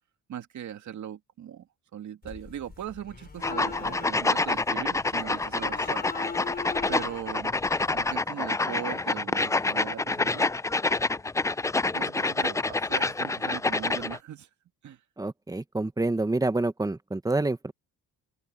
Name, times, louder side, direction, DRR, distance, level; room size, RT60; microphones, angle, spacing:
voice 1, 0.3-7.6 7.9-10.5 11.6-14.5 14.8-15.0, right 10 dB, 60° right, 2.3 m, -40 dB
sound 1, 2.2-8.2, left 5 dB, 30° left, 4.7 m, -41 dB
sound 2, 3.4-14.2, left 3 dB, 10° left, 0.4 m, -27 dB
voice 2, 15.2-17.7, right 2 dB, 10° right, 1.4 m, -27 dB
open air
cardioid pair, 95°, 33 cm